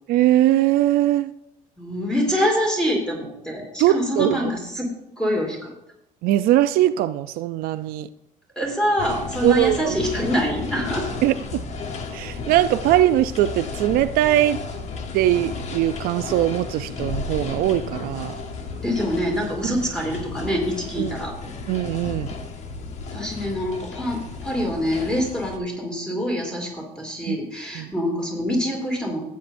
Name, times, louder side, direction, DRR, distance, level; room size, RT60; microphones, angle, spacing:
voice 1, 0.1-1.3 3.8-4.4 6.2-8.1 9.4-10.0 11.2-11.6 12.1-14.6 15.1-18.4 19.6-19.8 21.0-21.1 21.7-22.3 27.3-27.4 27.8-27.9, right 13 dB, 75° right, 12 dB, 0.4 m, -21 dB
voice 2, 1.8-4.9 5.2-5.7 8.6-11.1 18.8-21.3 23.1-29.2, equal, 5° left, -1 dB, 2.4 m, -25 dB
sound 1, 9.0-25.6, left 4 dB, 50° left, 1.0 m, -33 dB
15.0 x 8.3 x 2.6 m, 0.82 s
cardioid pair, 160°, 15 cm